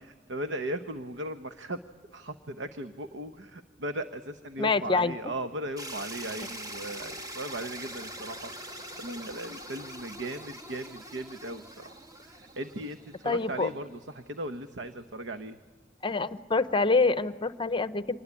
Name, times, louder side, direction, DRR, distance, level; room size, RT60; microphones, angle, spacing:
voice 1, 0.0-1.8 2.1-11.9 12.2-15.6, right 1 dB, 75° right, 9 dB, 1.0 m, -37 dB
voice 2, 4.6-5.3 13.2-13.7 16.0-18.2, left 3 dB, 25° left, 13 dB, 0.8 m, -26 dB
sound 1, 5.8-13.8, right 1 dB, 20° right, 1.5 m, -43 dB
25.5 x 20.5 x 10.0 m, 1.5 s
head